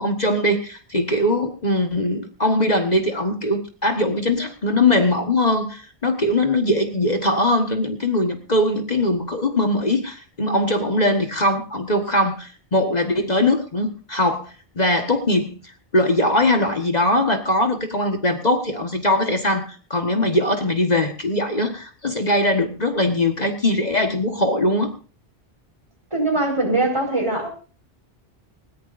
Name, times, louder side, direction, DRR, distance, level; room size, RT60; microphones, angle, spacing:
voice 1, 0.0-15.6 15.9-24.9, left 1 dB, 40° left, 4 dB, 1.6 m, -21 dB
voice 2, 26.1-27.5, right 2 dB, 30° right, 2 dB, 4.7 m, -21 dB
20.0 x 18.5 x 2.6 m, 0.38 s
omnidirectional pair, 1.1 m